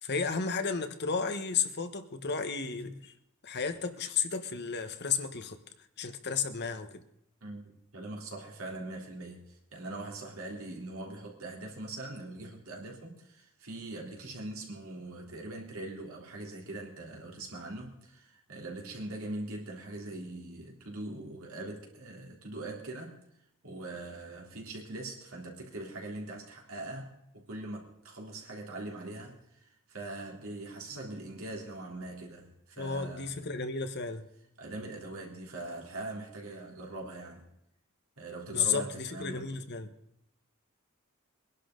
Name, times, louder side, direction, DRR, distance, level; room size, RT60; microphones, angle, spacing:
voice 1, 0.0-3.1 3.4-5.6 6.0-7.0 32.8-34.3 38.5-39.9, left 5 dB, 50° left, 1.2 m, -33 dB
voice 2, 7.4-23.2 23.6-33.4 34.6-37.5 38.2-39.5, right 2 dB, 70° right, 3.5 m, -42 dB
22.5 x 11.5 x 3.9 m
head